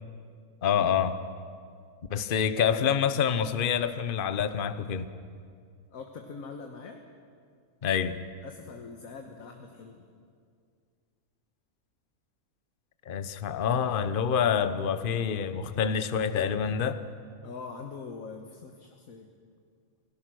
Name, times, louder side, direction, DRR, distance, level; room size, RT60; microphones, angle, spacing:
voice 1, 0.6-1.2 2.1-5.1 7.8-8.2 13.1-17.0, left 7 dB, 40° left, 11 dB, 0.9 m, -27 dB
voice 2, 5.9-7.0 8.4-10.1 17.4-19.3, left 4 dB, 65° left, 3 dB, 1.7 m, -43 dB
27.5 x 17.5 x 6.2 m, 2.2 s
omnidirectional pair, 1.6 m